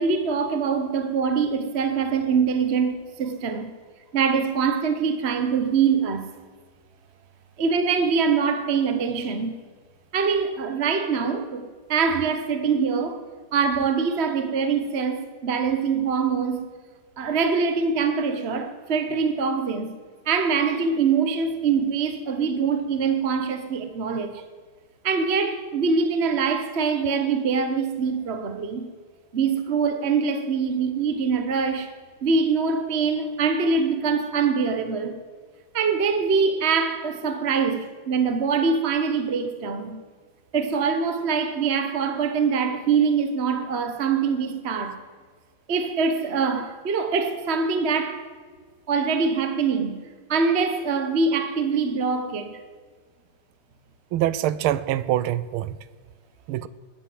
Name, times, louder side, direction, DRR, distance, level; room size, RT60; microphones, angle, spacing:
voice 1, 0.0-3.7 4.1-6.3 7.6-9.5 10.1-13.2 13.5-16.6 17.2-19.9 20.3-24.4 25.0-28.9 29.3-31.9 32.2-35.2 35.7-40.0 40.5-45.0 45.7-48.3 48.9-50.0 50.3-52.6, right 5 dB, 45° right, 0.9 m, -24 dB
voice 2, 54.1-55.8 56.5-56.7, right 13 dB, 80° right, 1.5 m, -24 dB
20.5 x 9.2 x 7.7 m
omnidirectional pair, 2.4 m